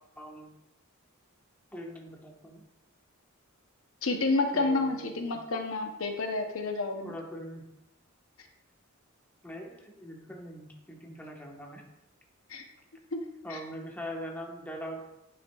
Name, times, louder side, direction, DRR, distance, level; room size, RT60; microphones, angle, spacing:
voice 1, 0.2-0.5 1.7-2.6 4.5-5.3 7.0-7.6 9.4-11.8 13.4-15.0, equal, 10° left, -1 dB, 1.1 m, -42 dB
voice 2, 4.0-7.1 12.5-12.6 13.1-13.2 13.5-13.6, left 3 dB, 65° left, 4 dB, 0.8 m, -29 dB
10.0 x 6.0 x 2.3 m, 0.87 s
head